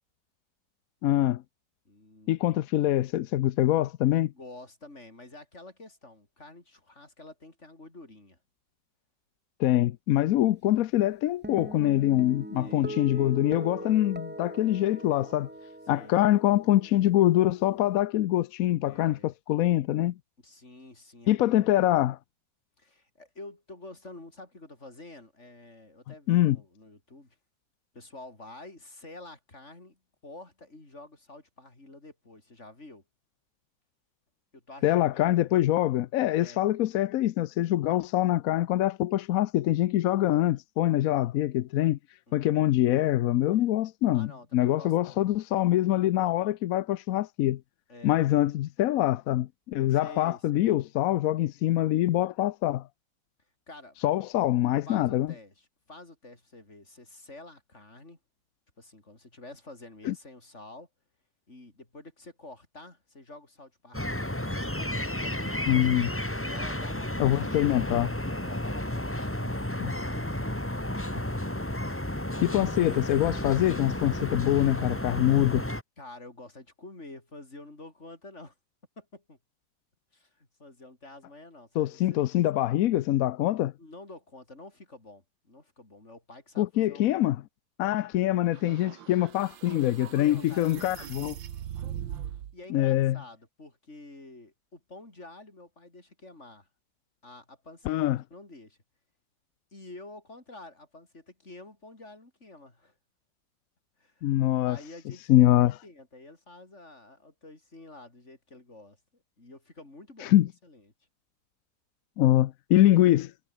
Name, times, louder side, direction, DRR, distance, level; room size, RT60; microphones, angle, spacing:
voice 1, 1.0-1.4 2.3-4.3 9.6-15.5 15.9-20.1 21.3-22.2 26.3-26.6 34.8-42.0 42.3-47.6 48.0-52.9 54.0-55.3 60.1-60.2 65.7-66.1 67.2-68.1 69.8-69.9 72.4-75.6 81.8-83.7 86.6-87.4 87.8-91.3 92.7-93.2 97.9-98.2 104.2-104.8 105.3-105.7 110.2-110.5 112.2-113.3, left 14 dB, 70° left, 0.8 m, -24 dB
voice 2, 1.9-2.6 4.3-8.4 12.6-13.3 15.9-16.2 18.8-19.3 20.4-21.7 22.8-27.4 27.9-33.0 34.5-35.5 36.4-36.6 42.3-42.7 44.1-45.2 47.9-48.2 49.9-50.8 53.7-54.0 54.9-58.2 58.8-60.9 61.5-64.3 64.8-65.8 66.5-67.9 68.4-69.5 69.8-70.6 76.0-78.5 79.0-79.4 80.1-82.2 83.8-87.3 90.1-91.3 92.5-96.7 97.2-98.8 99.7-102.9 104.0-104.3 104.6-110.3 110.6-110.9, left 2 dB, 35° left, 5.4 m, -49 dB
Guitar, 11.4-18.0, right 1 dB, 10° right, 0.6 m, -41 dB
sound 1, 63.9-75.8, left 1 dB, 5° left, 2.1 m, -32 dB
sound 2, 88.5-92.6, right 10 dB, 85° right, 1.9 m, -40 dB
omnidirectional pair, 2.0 m